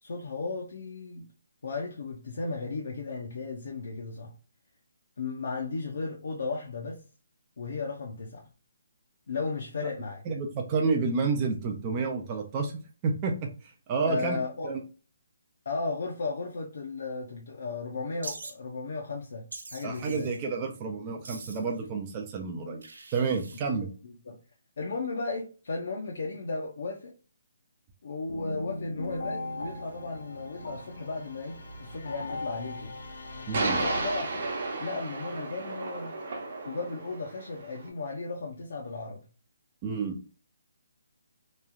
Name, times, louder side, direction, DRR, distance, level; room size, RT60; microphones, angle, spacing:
voice 1, 0.0-1.3 1.6-4.3 5.2-7.0 7.6-8.5 9.3-10.2 14.1-14.7 15.7-20.3 24.0-24.4 24.8-27.1 28.0-33.0 33.6-34.5 34.8-36.2 36.6-39.2, left 3 dB, 55° left, 0 dB, 0.6 m, -35 dB
voice 2, 10.3-12.7 13.0-14.4 14.6-14.8 19.8-22.8 23.1-23.9 33.5-33.8 39.8-40.2, right 4 dB, 20° right, 1 dB, 0.3 m, -30 dB
Wild animals, 18.2-18.5 19.5-20.4 21.2-21.8 22.8-23.6, right 3 dB, 80° right, 0.7 m, -43 dB
sound 1, 28.3-35.1, left 1 dB, 85° left, 0.9 m, -39 dB
sound 2, 30.8-30.9 33.5-37.9, right 3 dB, 40° right, 0.8 m, -33 dB
3.0 x 2.4 x 2.3 m, 0.36 s
hypercardioid pair, 175°, 0 cm